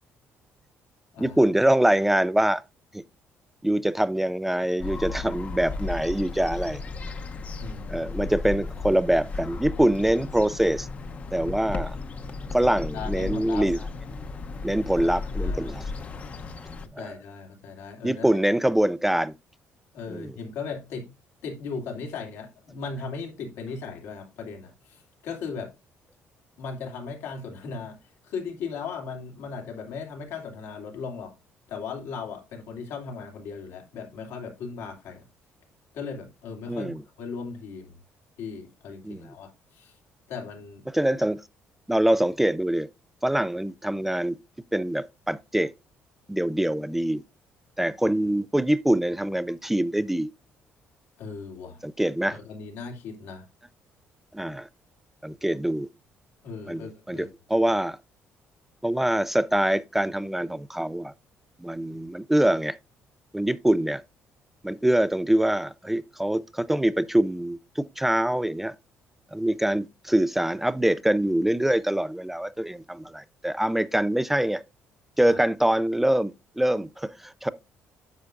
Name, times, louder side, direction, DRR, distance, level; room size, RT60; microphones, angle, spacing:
voice 1, 1.2-2.6 2.9-3.0 3.6-6.8 7.9-10.9 11.3-12.0 12.5-13.8 14.6-15.8 16.9-17.2 18.0-19.3 20.1-20.3 36.7-37.0 39.0-39.3 40.9-41.4 41.9-42.9 43.2-44.4 44.7-45.7 46.3-47.2 47.8-50.3 51.8-52.4 54.3-54.7 55.2-55.9 56.7-58.0 58.8-61.1 61.6-62.8 63.3-64.0 64.6-68.7 69.3-74.6 75.2-77.5, right 1 dB, 5° right, 0.3 m, -24 dB
sound 1, 4.8-16.9, left 3 dB, 30° left, 0.7 m, -35 dB
voice 2, 7.6-8.4 12.6-13.7 15.0-15.8 16.8-18.3 19.9-21.1 21.4-25.7 26.6-28.0 28.2-31.4 31.7-35.2 35.9-38.0 38.4-39.9 40.3-40.9 51.2-51.8 52.3-53.5 56.4-57.3 75.3-75.4, left 5 dB, 85° left, 2.7 m, -37 dB
9.6 x 6.8 x 2.5 m
cardioid pair, 145°, 5 cm